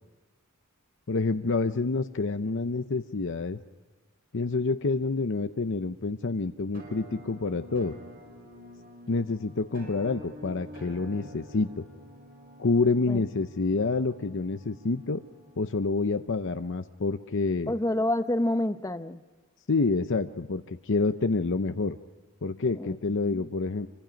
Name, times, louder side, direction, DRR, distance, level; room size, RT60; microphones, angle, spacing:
voice 1, 1.1-3.6 4.3-8.0 9.1-11.8 12.6-15.2 15.6-17.7 19.7-22.0 22.4-23.9, left 3 dB, 60° left, 8 dB, 0.7 m, -28 dB
Musical instrument, 6.7-16.5, equal, 45° right, 4.7 m, -48 dB
voice 2, 17.7-19.2 22.7-23.0, left 1 dB, 15° left, 10 dB, 0.8 m, -28 dB
26.5 x 24.5 x 5.2 m, 1.4 s
head